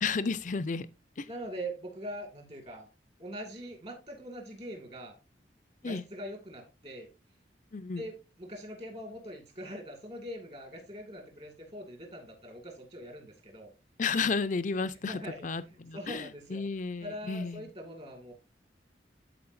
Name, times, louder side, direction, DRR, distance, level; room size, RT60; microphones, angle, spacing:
voice 1, 0.0-0.9 1.2-1.3 5.8-6.0 7.7-8.0 14.0-17.6, left 4 dB, 45° left, 0.5 m, -32 dB
voice 2, 1.3-2.9 3.2-5.2 5.8-7.1 8.0-13.7 15.0-16.6 17.0-18.3, equal, 35° right, 2.2 m, -42 dB
13.0 x 4.6 x 2.6 m
head